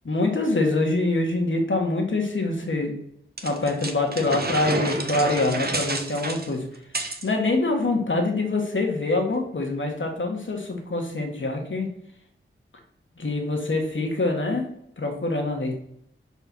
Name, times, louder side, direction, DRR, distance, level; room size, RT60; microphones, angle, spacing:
voice 1, 0.0-2.9 3.4-6.6 7.2-11.9 13.2-14.7 15.0-15.8, left 2 dB, 65° left, 2 dB, 1.5 m, -25 dB
sound 1, 3.4-7.3, right 2 dB, 50° right, 0.8 m, -30 dB
5.0 x 4.4 x 6.0 m, 0.74 s
wide cardioid pair, 55°, 21 cm